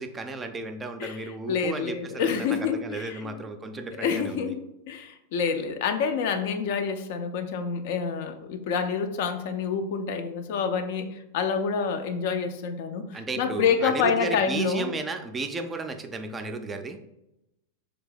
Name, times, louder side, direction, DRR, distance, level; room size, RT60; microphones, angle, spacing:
voice 1, 0.0-4.5 13.1-17.0, right 3 dB, 15° right, 6 dB, 0.4 m, -34 dB
voice 2, 1.5-3.4 4.0-4.6 4.9-14.9, left 6 dB, 50° left, 7 dB, 0.4 m, -27 dB
3.4 x 2.7 x 3.8 m, 0.87 s
figure-of-eight pair, 90°, 0 cm